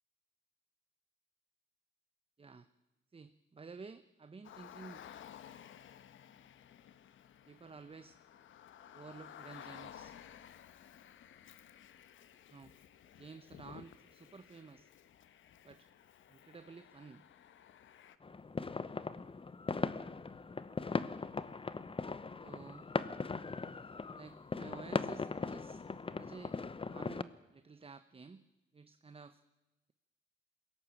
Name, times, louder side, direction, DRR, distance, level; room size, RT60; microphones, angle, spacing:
voice 1, 3.1-5.0 7.5-8.2 8.9-10.2 12.5-12.7 13.2-14.9 15.6-15.9 16.3-17.2 22.4-22.9 24.2-25.9 26.2-26.6 26.9-28.4 28.7-29.4, right 4 dB, 30° right, 12 dB, 1.0 m, -52 dB
Car, 4.4-18.2, left 10 dB, 80° left, 1.2 m, -55 dB
sound 1, 18.2-27.2, left 4 dB, 25° left, 1.0 m, -39 dB
21.5 x 17.5 x 8.8 m, 1.0 s
cardioid pair, 80°, 20 cm